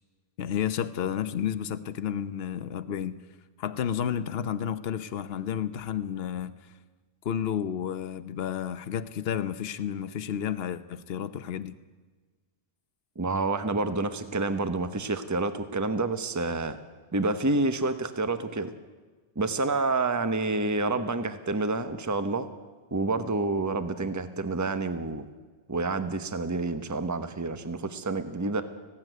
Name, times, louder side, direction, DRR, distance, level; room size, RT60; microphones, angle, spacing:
voice 1, 0.4-3.2 3.6-6.5 7.2-11.8, left 9 dB, 60° left, 1.1 m, -31 dB
voice 2, 13.2-16.8 17.1-18.7 19.4-22.5 22.9-25.3 25.7-28.6, right 3 dB, 15° right, 1.0 m, -28 dB
19.0 x 16.0 x 9.2 m
omnidirectional pair, 1.2 m